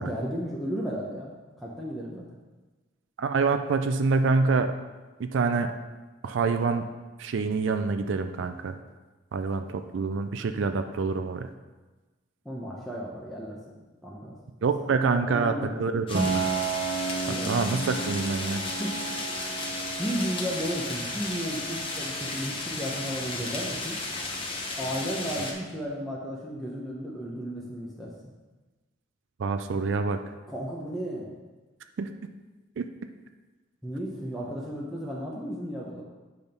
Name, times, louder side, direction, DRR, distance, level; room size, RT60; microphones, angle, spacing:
voice 1, 0.0-2.4 12.4-14.4 15.1-15.8 17.3-17.5 18.8-18.9 20.0-24.0 24.8-28.1 30.5-31.3 33.8-36.0, equal, ahead, -5 dB, 0.7 m, -34 dB
voice 2, 3.2-4.7 5.2-5.7 6.2-6.8 7.2-8.8 9.3-11.5 14.6-15.5 15.8-16.4 17.5-18.6 29.4-30.2 32.0-32.1 32.8-32.9, right 4 dB, 65° right, 8 dB, 0.4 m, -26 dB
sound 1, 16.1-25.5, left 3 dB, 25° left, 0.9 m, -34 dB
Piano, 16.1-25.7, right 4 dB, 45° right, 1.0 m, -35 dB
8.1 x 3.5 x 5.3 m, 1.2 s
head